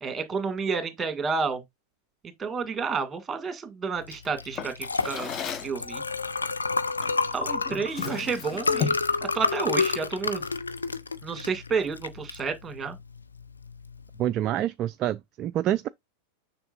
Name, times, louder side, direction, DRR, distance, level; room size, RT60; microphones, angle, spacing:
voice 1, 0.0-1.6 2.4-4.7 5.0-5.3 5.6-6.0 7.3-8.9 9.3-10.4 11.2-13.0, right 5 dB, 15° right, 2.1 m, -30 dB
Liquid, 4.0-14.2, left 4 dB, 75° left, 0.5 m, -30 dB
Drawer open or close, 4.6-5.8 7.0-7.2 7.7-9.1, left 7 dB, 30° left, 0.9 m, -34 dB
voice 2, 14.2-15.9, right 12 dB, 35° right, 0.3 m, -27 dB
6.9 x 5.8 x 2.4 m
figure-of-eight pair, 90°, 0 cm